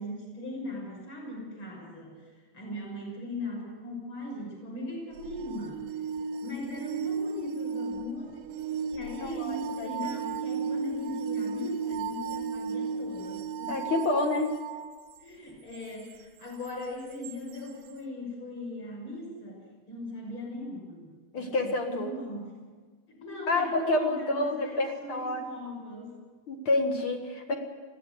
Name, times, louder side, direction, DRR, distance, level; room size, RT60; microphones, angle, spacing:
voice 1, 0.0-5.9 6.2-14.0 15.2-21.1 21.4-22.5 23.1-26.2, left 1 dB, 30° left, -1 dB, 6.7 m, -39 dB
sound 1, 5.2-14.9 17.2-17.3, right 5 dB, 75° right, 2.3 m, -34 dB
voice 2, 9.2-9.9 13.7-14.5 21.3-22.1 23.5-25.4 26.5-27.5, left 2 dB, 50° left, 4 dB, 1.7 m, -28 dB
21.5 x 16.0 x 7.8 m, 1.5 s
omnidirectional pair, 4.7 m